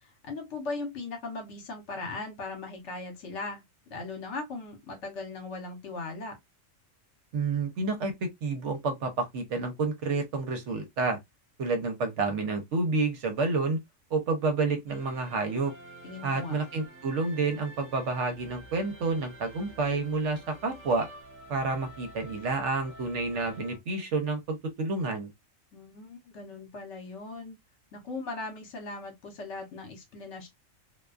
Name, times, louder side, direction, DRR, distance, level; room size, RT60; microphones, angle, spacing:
voice 1, 0.0-3.6 3.9-6.4 16.0-16.6 25.7-27.6 27.9-30.5, left 3 dB, 65° left, 1.1 m, -38 dB
voice 2, 7.3-8.1 8.4-11.2 11.6-13.8 14.1-15.7 16.2-21.1 21.5-25.3, right 3 dB, 70° right, 1.0 m, -29 dB
sound 1, 14.9-23.8, right 1 dB, 15° right, 0.6 m, -49 dB
2.4 x 2.2 x 2.3 m
omnidirectional pair, 1.3 m